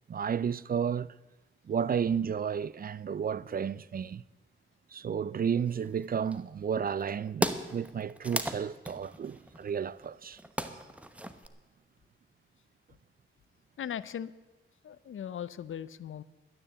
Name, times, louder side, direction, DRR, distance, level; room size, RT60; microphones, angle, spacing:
voice 1, 0.1-1.1 1.7-4.2 4.9-10.4, right 7 dB, 45° right, 0.4 m, -32 dB
sound 1, 5.7-6.4 7.0-7.1 7.3-11.5, right 1 dB, 5° right, 1.0 m, -36 dB
voice 2, 13.8-14.3 14.8-16.2, left 9 dB, 70° left, 0.6 m, -38 dB
12.5 x 10.0 x 8.2 m
cardioid pair, 80°, 21 cm